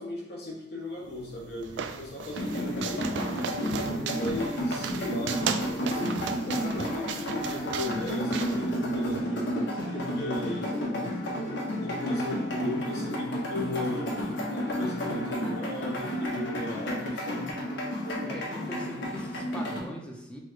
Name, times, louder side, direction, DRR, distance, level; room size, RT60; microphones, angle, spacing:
voice 1, 0.0-3.1 4.1-11.1 11.7-17.5, left 2 dB, 60° left, -3 dB, 1.2 m, -37 dB
sound 1, 1.0-9.2, right 6 dB, 75° right, 0.3 m, -37 dB
sound 2, 2.4-19.8, equal, 75° left, 0.9 m, -31 dB
voice 2, 18.2-20.4, equal, 5° left, -1 dB, 0.6 m, -41 dB
6.0 x 2.2 x 3.1 m, 0.87 s
head